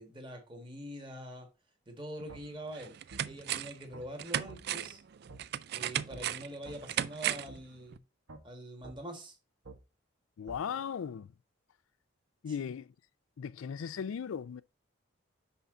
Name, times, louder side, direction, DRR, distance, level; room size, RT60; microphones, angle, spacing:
voice 1, 0.0-1.5 1.9-2.9 3.2-5.0 5.7-8.0 8.4-9.3 12.5-12.7, right 1 dB, 25° right, 1.6 m, -44 dB
sound 1, 2.2-2.3 2.7-3.8 4.2-7.6 7.9-8.0, right 11 dB, 50° right, 0.3 m, -36 dB
sound 2, 2.3-2.4 3.1-3.3 3.9-4.1 4.5-4.6 5.3-5.4 6.1-6.2 6.7-6.8 7.5-7.6 8.3-8.4 8.8-9.0 9.7-9.8 10.5-10.6, right 2 dB, 75° right, 1.3 m, -48 dB
voice 2, 10.4-11.3 12.4-12.9 13.4-14.6, left 7 dB, 80° left, 0.4 m, -37 dB
5.6 x 5.5 x 3.7 m
head